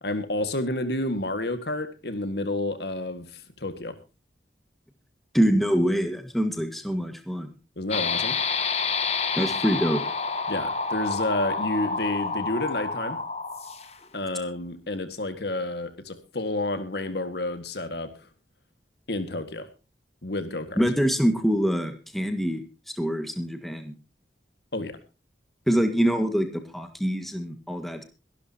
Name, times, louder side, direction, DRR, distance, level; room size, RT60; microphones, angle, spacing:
voice 1, 0.0-4.0 7.8-8.4 10.5-13.2 14.1-18.3 19.1-19.7 20.2-20.8 24.7-25.0, left 2 dB, 65° left, 10 dB, 1.9 m, -30 dB
voice 2, 5.3-7.5 9.4-10.0 20.8-22.6 23.0-23.9 25.7-28.0, equal, ahead, 6 dB, 1.8 m, -25 dB
sound 1, 7.9-14.0, left 4 dB, 35° left, 1.4 m, -28 dB
23.0 x 12.0 x 2.9 m, 0.31 s
head